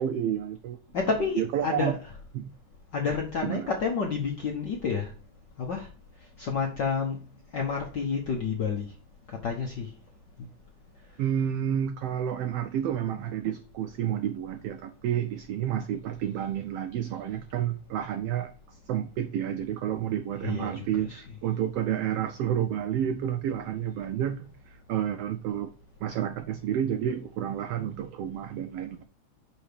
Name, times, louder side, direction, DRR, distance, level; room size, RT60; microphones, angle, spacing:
voice 1, 0.0-0.8 1.2-1.9 2.3-2.5 3.4-3.7 11.2-25.7 26.0-29.0, right 10 dB, 85° right, 9 dB, 1.3 m, -30 dB
voice 2, 0.9-2.0 2.9-5.1 5.6-5.9 6.4-7.2 7.5-8.9 9.4-9.9 10.4-10.5 20.4-21.3, left 5 dB, 65° left, 1 dB, 1.1 m, -29 dB
5.9 x 5.0 x 6.6 m, 0.37 s
omnidirectional pair, 3.4 m